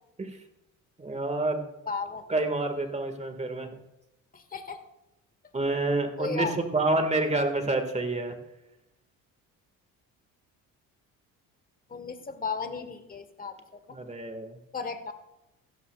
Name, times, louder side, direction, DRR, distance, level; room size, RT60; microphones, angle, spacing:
voice 1, 1.0-1.6 2.3-3.8 5.5-8.4 13.9-14.6, right 2 dB, 20° right, 6 dB, 1.8 m, -28 dB
voice 2, 1.9-2.2 4.3-4.8 6.2-6.5 11.9-14.0 14.7-15.1, left 5 dB, 25° left, 9 dB, 1.4 m, -35 dB
15.5 x 12.5 x 2.4 m, 0.91 s
supercardioid pair, 85°, 37 cm